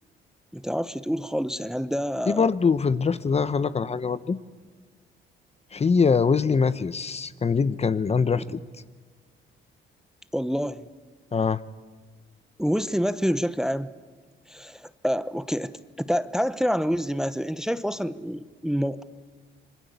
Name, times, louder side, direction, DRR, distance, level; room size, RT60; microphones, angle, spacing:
voice 1, 0.5-2.5 8.4-8.5 10.3-10.9 12.6-13.9 14.5-19.0, equal, 5° right, 14 dB, 0.8 m, -27 dB
voice 2, 2.3-4.4 5.7-8.6 11.3-11.6, left 5 dB, 30° left, 15 dB, 0.9 m, -23 dB
26.5 x 21.5 x 8.2 m, 1.4 s
cardioid pair, 90°, 20 cm